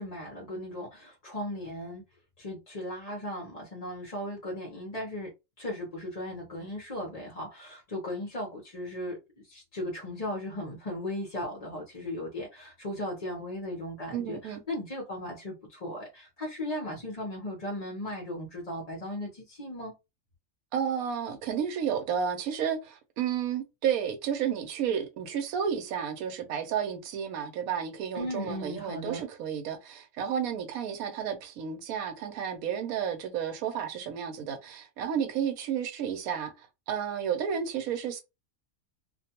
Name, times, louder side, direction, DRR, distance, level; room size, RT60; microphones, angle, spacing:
voice 1, 0.0-2.0 2.4-5.3 5.6-9.2 9.4-19.9 28.1-29.2, left 1 dB, 35° left, 0.7 m, -37 dB
voice 2, 14.1-14.6 20.7-38.2, right 8 dB, 85° right, 1.1 m, -32 dB
2.5 x 2.2 x 2.8 m
omnidirectional pair, 1.5 m